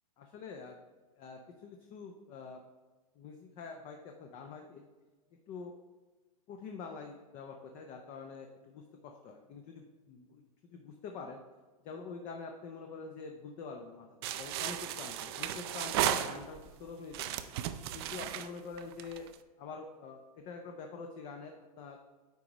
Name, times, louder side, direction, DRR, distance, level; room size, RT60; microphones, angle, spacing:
voice 1, 0.2-0.8 1.2-2.6 3.1-4.8 5.5-5.7 6.5-11.4 11.8-17.4 17.9-19.3 19.6-22.0, left 4 dB, 30° left, 3 dB, 0.6 m, -46 dB
sound 1, 14.2-16.7 17.1-19.3, right 11 dB, 40° right, 0.4 m, -35 dB
9.1 x 4.9 x 3.0 m, 1.3 s
hypercardioid pair, 145°, 20 cm